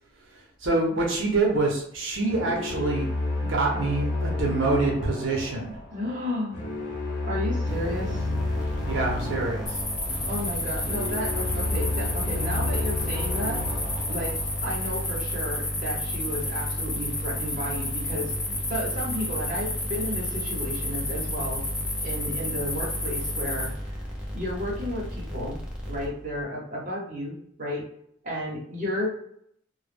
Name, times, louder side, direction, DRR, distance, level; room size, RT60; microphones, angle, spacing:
voice 1, 0.6-3.1 3.5-5.7 8.9-9.8, right 3 dB, 75° right, -2 dB, 0.6 m, -25 dB
sound 1, 2.3-15.4, left 2 dB, 85° left, 0.9 m, -31 dB
voice 2, 5.9-6.6 7.2-8.3 10.2-13.6 14.1-14.3 14.6-21.6 22.0-24.1 24.3-25.6 25.9-27.9 28.2-29.1, equal, 40° right, -4 dB, 0.8 m, -33 dB
sound 2, 7.7-26.4, equal, 5° right, 0.3 m, -34 dB
sound 3, 9.7-23.7, left 2 dB, 40° left, 0.9 m, -32 dB
2.1 x 2.0 x 3.2 m, 0.69 s
head